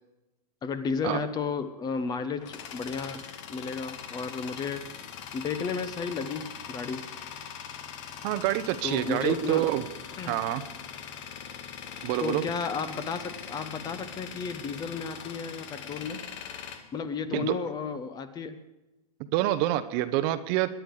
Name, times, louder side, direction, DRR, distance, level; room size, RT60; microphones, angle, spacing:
voice 1, 0.6-5.1 5.3-7.0 8.8-9.6 10.1-10.4 12.2-16.2 16.9-18.6, left 5 dB, 20° left, 12 dB, 1.0 m, -33 dB
Tools, 1.9-17.8, left 8 dB, 50° left, 1.7 m, -42 dB
voice 2, 8.2-9.8 10.3-10.6 12.0-12.4 17.3-17.5 19.3-20.7, right 14 dB, 40° right, 12 dB, 0.9 m, -27 dB
21.5 x 10.0 x 5.0 m, 1.0 s
hypercardioid pair, 135°, 20 cm